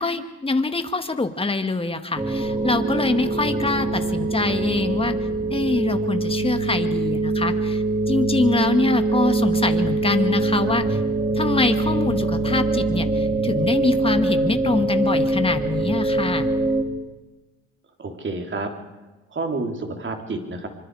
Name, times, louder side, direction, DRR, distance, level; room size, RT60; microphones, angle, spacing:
voice 1, 0.0-5.1 5.5-11.0 11.4-16.5, left 3 dB, 20° left, 8 dB, 2.0 m, -24 dB
sound 1, 2.2-16.8, right 2 dB, 15° right, 3.1 m, -23 dB
voice 2, 18.0-18.7 19.3-20.7, right 3 dB, 40° right, 4 dB, 3.7 m, -29 dB
25.5 x 25.5 x 5.0 m, 1.1 s
cardioid pair, 90°, 30 cm